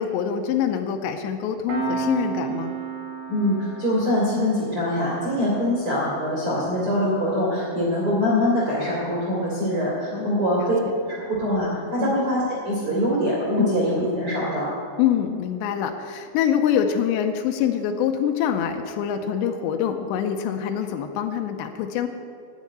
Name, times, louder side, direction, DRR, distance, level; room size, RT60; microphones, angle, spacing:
voice 1, 0.0-2.8 10.1-11.0 12.0-12.2 13.6-13.7 15.0-22.1, left 9 dB, 85° left, 6 dB, 2.6 m, -25 dB
Piano, 1.7-12.8, right 5 dB, 50° right, 3.1 m, -36 dB
voice 2, 3.3-10.8 11.1-14.7, equal, 35° right, -6 dB, 2.8 m, -23 dB
12.5 x 6.4 x 9.6 m, 2.5 s
omnidirectional pair, 5.7 m